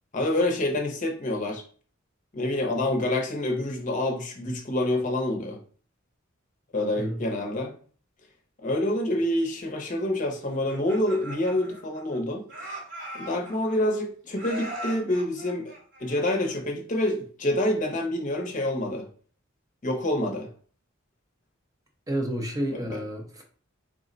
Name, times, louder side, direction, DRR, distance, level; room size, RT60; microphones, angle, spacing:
voice 1, 0.1-1.6 2.3-5.6 6.7-7.7 8.6-12.4 13.1-15.7 16.0-19.0 19.8-20.5 22.9-23.0, left 1 dB, 40° left, 2 dB, 0.7 m, -27 dB
voice 2, 7.0-7.3 22.1-23.4, right 1 dB, 15° right, 2 dB, 0.6 m, -30 dB
Laughter, 10.5-12.2 12.5-14.0 14.4-16.6, right 1 dB, 60° right, 1.2 m, -40 dB
3.6 x 2.1 x 3.8 m, 0.42 s
head